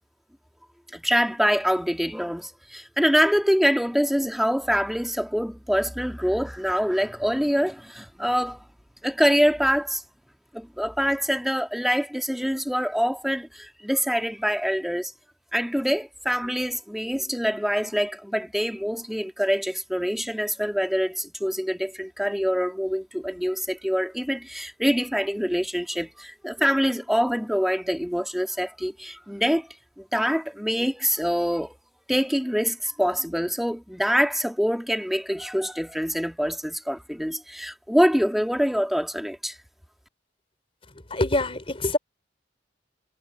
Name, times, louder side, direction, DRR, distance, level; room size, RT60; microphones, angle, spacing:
voice 1, 0.9-8.6 9.0-10.0 10.5-15.1 15.5-29.7 30.0-31.8 32.1-39.6, equal, ahead, 1.8 m, -25 dB
voice 2, 41.1-42.0, left 2 dB, 30° left, 4.0 m, -24 dB
head